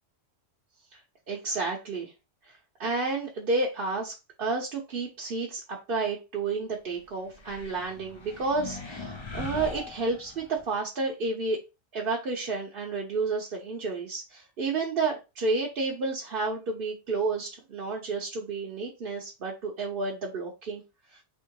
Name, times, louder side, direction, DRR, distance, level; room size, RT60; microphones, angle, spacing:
voice 1, 1.3-2.1 2.4-4.1 4.4-11.6 11.9-20.8 21.1-21.2, right 3 dB, 50° right, -1 dB, 1.0 m, -31 dB
sound 1, 7.3-10.7, left 4 dB, 30° left, 0.5 m, -40 dB
3.6 x 3.1 x 4.6 m, 0.27 s
omnidirectional pair, 1.3 m